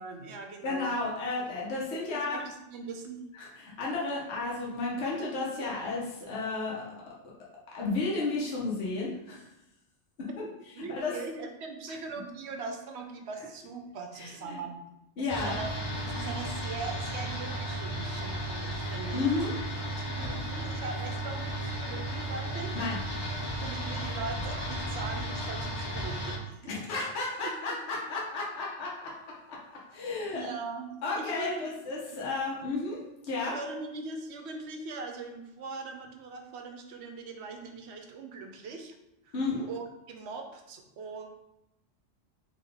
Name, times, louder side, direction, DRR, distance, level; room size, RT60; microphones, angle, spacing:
voice 1, 0.0-0.9 2.1-3.3 10.8-14.8 15.2-15.7 16.0-19.2 20.0-22.8 23.6-26.7 27.4-27.5 30.3-31.7 32.1-32.2 33.4-39.0 39.2-39.3 39.7-41.3, right 4 dB, 70° right, 4 dB, 0.8 m, -41 dB
voice 2, 0.6-2.4 3.4-6.8 7.7-9.4 10.2-10.3 11.0-11.1 14.2-14.6 15.2-15.6 19.1-19.5 22.8-23.0 26.9-30.5 31.0-33.0 33.2-33.5 39.3-39.6, left 3 dB, 65° left, -5 dB, 1.1 m, -33 dB
sound 1, 15.3-26.4, right 1 dB, 40° left, 0.4 m, -34 dB
3.9 x 2.9 x 3.3 m, 0.86 s
omnidirectional pair, 1.2 m